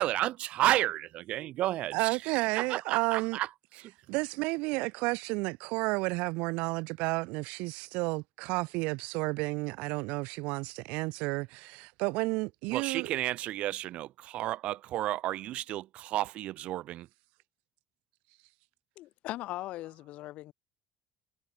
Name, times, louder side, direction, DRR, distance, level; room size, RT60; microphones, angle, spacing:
voice 1, 0.0-3.5 3.8-3.9 12.7-17.1, right 14 dB, 70° right, 5.3 m, -32 dB
voice 2, 1.9-3.4 4.1-13.1, right 26 dB, 90° right, 5.6 m, -31 dB
voice 3, 19.0-20.5, left 16 dB, 75° left, 5.7 m, -39 dB
cardioid pair, 100°, 2 cm